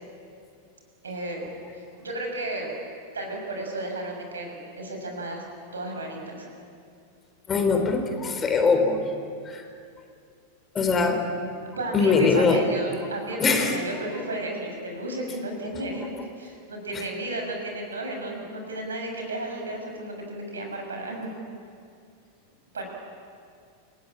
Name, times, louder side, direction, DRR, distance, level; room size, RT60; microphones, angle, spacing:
voice 1, 1.0-1.4 1.7-2.7 3.1-5.4 5.7-6.5 11.6-16.1 16.4-21.3 22.7-22.8, right 1 dB, 70° right, 2 dB, 6.5 m, -33 dB
voice 2, 7.5-9.0 9.4-9.7 10.7-11.2 11.9-12.6 13.4-13.8 16.9-17.0, left 4 dB, 20° left, 5 dB, 3.8 m, -22 dB
29.5 x 17.5 x 9.9 m, 2.4 s
figure-of-eight pair, 90°, 0 cm